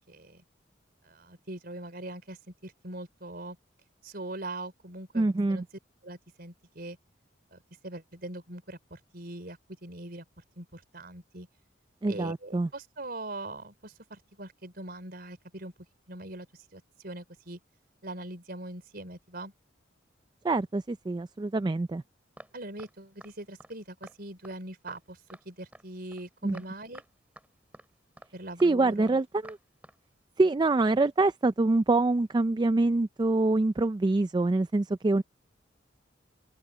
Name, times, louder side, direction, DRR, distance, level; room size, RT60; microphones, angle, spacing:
voice 1, 0.1-0.4 1.0-3.6 4.0-5.6 6.0-7.0 7.5-10.2 10.6-11.5 12.1-15.7 16.1-16.5 16.7-17.6 18.0-19.5 22.5-25.2 25.4-27.0 28.3-29.2, right 1 dB, 55° right, 4.4 m, -42 dB
voice 2, 5.1-5.6 12.0-12.7 20.4-22.0 26.4-26.6 28.6-29.6 30.4-35.2, right 2 dB, 25° right, 0.3 m, -25 dB
sound 1, 22.4-22.5 22.8-22.9 23.2-23.3 23.6-23.7 24.0-24.2 24.4-24.6 24.9-25.0 25.3-25.4 25.7-25.8 26.1-26.2 26.5-26.7 26.9-27.1 27.4-27.5 27.7-27.9 28.2-28.3 28.6-28.7 29.0-29.1 29.4-29.6 29.8-30.0, right 1 dB, 10° right, 6.1 m, -49 dB
head